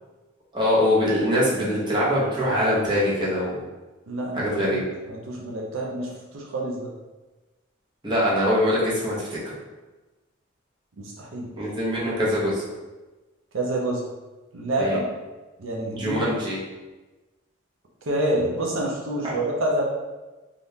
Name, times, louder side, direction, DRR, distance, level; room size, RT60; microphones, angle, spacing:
voice 1, 0.5-3.6 4.3-4.8 8.0-9.4 11.6-12.6 14.8-15.0 15.9-16.6 19.2-19.3, equal, 25° right, -7 dB, 0.8 m, -23 dB
voice 2, 4.1-4.8 5.1-6.9 11.0-11.5 13.5-14.0 14.5-15.1 15.6-16.2 18.1-19.8, right 1 dB, 80° right, -2 dB, 0.6 m, -27 dB
3.5 x 2.4 x 2.7 m, 1.2 s
head